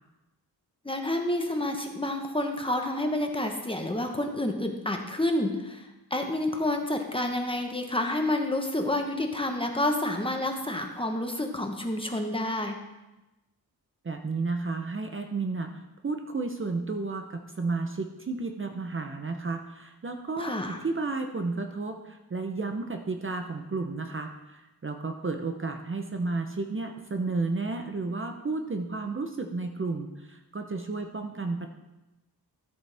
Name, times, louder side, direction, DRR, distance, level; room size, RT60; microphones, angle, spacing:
voice 1, 0.8-5.8 6.1-12.7 20.4-20.8, left 1 dB, 15° left, 3 dB, 1.1 m, -29 dB
voice 2, 14.0-31.7, right 3 dB, 35° right, 5 dB, 0.7 m, -32 dB
13.5 x 7.8 x 3.4 m, 1.0 s
wide cardioid pair, 110°, 37 cm